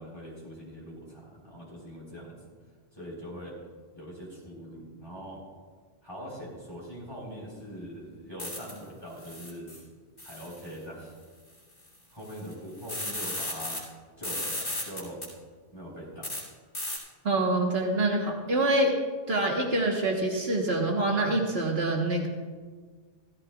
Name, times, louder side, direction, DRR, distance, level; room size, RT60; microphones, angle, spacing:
voice 1, 0.0-2.4 2.9-3.6 3.9-5.4 6.0-9.7 10.2-11.1 12.1-13.8 14.2-15.2 15.7-16.3, equal, 20° left, -4 dB, 4.2 m, -42 dB
sound 1, 8.4-8.8 9.2-9.8 10.2-10.7 11.9-12.0 12.2-13.8 14.2-15.2 16.2-16.4 16.7-17.0, left 1 dB, 75° left, 3.3 m, -35 dB
voice 2, 17.2-18.9 19.3-22.3, right 2 dB, 65° right, 0 dB, 1.6 m, -26 dB
15.5 x 13.5 x 2.4 m, 1.5 s
omnidirectional pair, 1.1 m